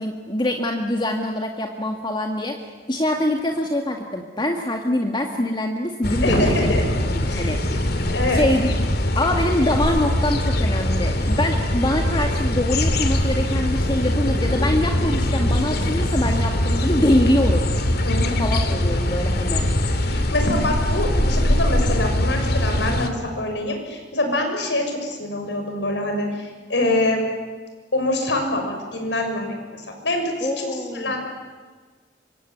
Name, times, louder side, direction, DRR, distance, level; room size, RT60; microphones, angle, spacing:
voice 1, 0.0-6.7 7.1-7.8 8.3-8.7 9.1-17.7 18.4-19.7 30.4-31.2, left 1 dB, 25° left, 2 dB, 1.9 m, -24 dB
sound 1, 6.0-23.1, left 1 dB, 60° left, 2.5 m, -22 dB
voice 2, 6.2-7.5 8.1-8.4 18.0-18.4 20.0-27.2 27.9-31.2, left 1 dB, 85° left, 4 dB, 6.6 m, -25 dB
25.5 x 25.0 x 9.4 m, 1.4 s
head